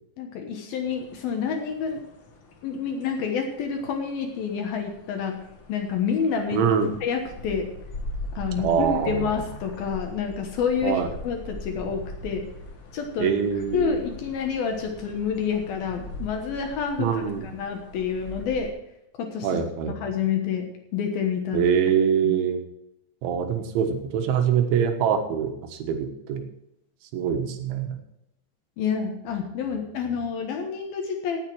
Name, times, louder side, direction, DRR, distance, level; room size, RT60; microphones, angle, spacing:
voice 1, 0.2-2.0 2.6-5.4 5.7-6.6 7.0-7.7 8.3-12.4 12.9-13.3 13.7-17.1 17.4-18.7 19.2-19.5 20.0-21.6 22.2-22.3 28.8-31.4, left 6 dB, 65° left, 4 dB, 2.6 m, -28 dB
sound 1, 0.8-18.7, left 1 dB, 85° left, 1.1 m, -41 dB
voice 2, 6.5-7.0 8.6-9.4 10.8-11.1 13.2-14.0 17.0-17.5 19.4-19.9 21.5-22.6 23.2-26.4 27.1-28.0, right 7 dB, 85° right, 6 dB, 3.8 m, -24 dB
17.0 x 8.2 x 4.7 m, 0.83 s
omnidirectional pair, 5.3 m